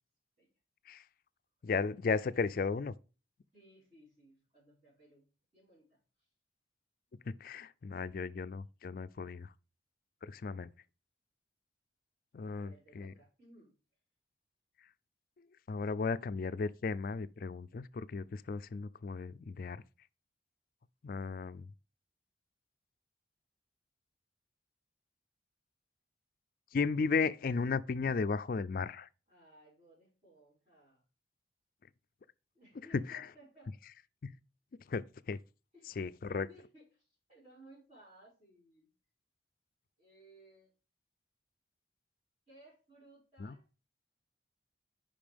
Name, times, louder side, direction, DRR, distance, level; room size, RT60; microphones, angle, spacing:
voice 1, 1.6-2.9 7.3-9.5 10.2-10.7 12.3-13.1 15.7-19.8 21.0-21.6 26.7-29.1 32.9-33.2 34.2-34.3 34.9-35.4 36.0-36.5 43.4-43.5, left 4 dB, 50° left, 0.3 m, -35 dB
voice 2, 3.5-5.3 5.5-6.3 12.4-13.7 29.3-31.0 32.5-33.8 35.7-36.0 36.3-38.9 40.0-40.7 42.5-43.6, right 1 dB, 35° right, 4.9 m, -60 dB
8.6 x 5.4 x 3.5 m
head